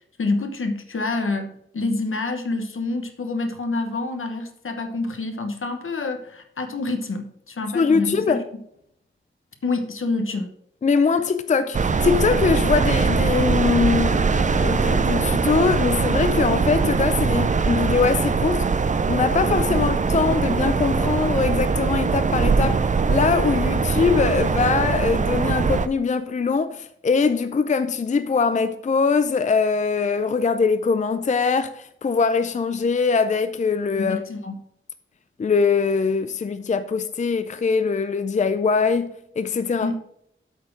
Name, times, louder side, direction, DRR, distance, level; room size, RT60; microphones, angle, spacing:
voice 1, 0.2-8.6 9.6-10.5 19.7-19.8 34.0-34.6 39.8-40.0, left 3 dB, 75° left, 1.1 m, -27 dB
voice 2, 7.7-8.4 10.8-18.7 19.1-34.2 35.4-39.9, left 5 dB, 35° left, 0.4 m, -22 dB
sound 1, 11.7-25.9, right 5 dB, 35° right, 0.4 m, -21 dB
8.2 x 4.3 x 6.1 m
wide cardioid pair, 75°, 21 cm